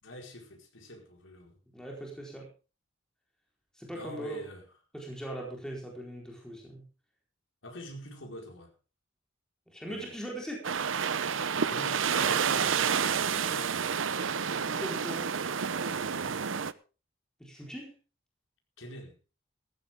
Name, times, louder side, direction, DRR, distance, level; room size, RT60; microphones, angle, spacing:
voice 1, 0.0-1.6 3.9-4.6 7.6-8.7 9.9-10.1 11.7-14.0 15.8-16.4 18.8-19.2, left 1 dB, 80° left, 2 dB, 4.7 m, -45 dB
voice 2, 1.7-2.5 3.7-4.4 4.9-6.8 9.7-10.6 14.4-15.3 17.4-17.9, right 1 dB, 5° left, -2 dB, 4.2 m, -40 dB
sound 1, 10.6-16.7, right 6 dB, 80° right, 0.8 m, -29 dB
15.5 x 14.5 x 3.7 m, 0.34 s
head